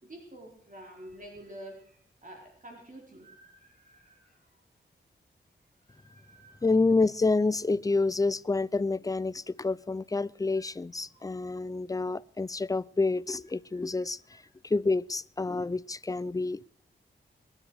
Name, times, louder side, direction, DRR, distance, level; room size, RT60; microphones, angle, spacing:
voice 1, 0.0-2.0 2.2-4.4 5.8-6.6 10.6-10.7 11.1-11.3 13.7-14.4, right 1 dB, 40° right, 4.2 m, -49 dB
voice 2, 6.6-16.7, left 3 dB, 15° left, 0.5 m, -28 dB
21.0 x 9.8 x 4.8 m
cardioid pair, 45°, 21 cm